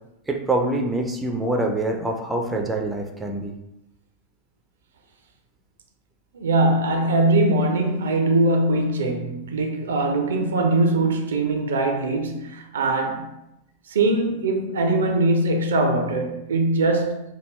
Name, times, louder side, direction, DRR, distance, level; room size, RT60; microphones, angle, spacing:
voice 1, 0.3-3.5, right 2 dB, 10° right, 0.4 m, -25 dB
voice 2, 6.3-13.3 13.9-17.2, right 2 dB, 65° right, 0.4 m, -21 dB
3.4 x 2.3 x 3.1 m
figure-of-eight pair, 90°, 0 cm